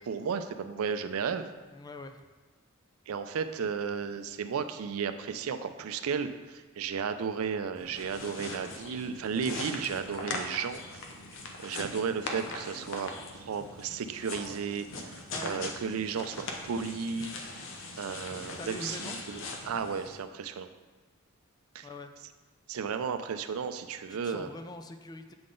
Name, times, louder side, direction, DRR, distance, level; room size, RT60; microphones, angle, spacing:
voice 1, 0.1-1.5 3.1-11.0 11.6-13.1 13.4-17.7 18.0-20.7 21.7-21.9 22.7-24.5, right 6 dB, 85° right, 9 dB, 0.4 m, -34 dB
voice 2, 1.7-2.2 15.3-15.6 18.5-19.2 21.8-22.1 24.2-25.3, left 2 dB, 20° left, 7 dB, 0.3 m, -43 dB
sound 1, 7.8-20.2, left 2 dB, 65° left, 0.7 m, -41 dB
7.8 x 3.7 x 3.8 m, 1.3 s
head